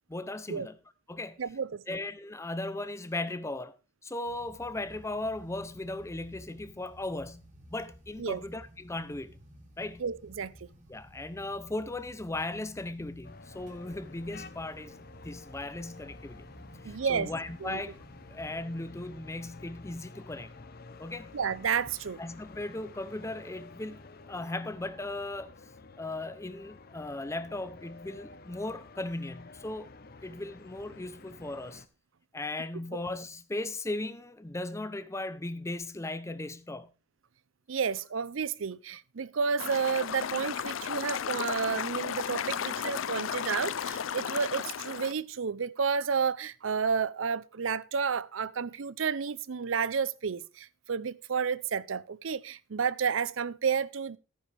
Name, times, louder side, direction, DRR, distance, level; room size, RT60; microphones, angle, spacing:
voice 1, 0.1-0.8 1.1-1.4 1.9-3.7 4.0-9.4 9.8-10.0 10.9-15.0 15.2-16.4 16.8-18.0 18.3-20.5 21.0-21.4 22.2-25.5 26.0-29.9 30.2-31.8 32.3-36.9, left 2 dB, 15° left, 0.6 m, -37 dB
voice 2, 1.4-2.0 8.2-8.4 10.0-10.7 16.8-17.3 17.6-17.8 21.3-22.2 37.7-54.2, right 6 dB, 85° right, 0.6 m, -31 dB
sound 1, 4.2-18.5, equal, 40° right, 3.0 m, -54 dB
sound 2, 13.2-31.9, left 3 dB, 50° left, 0.8 m, -50 dB
sound 3, 39.6-45.1, left 8 dB, 85° left, 0.5 m, -34 dB
14.0 x 9.8 x 3.4 m
head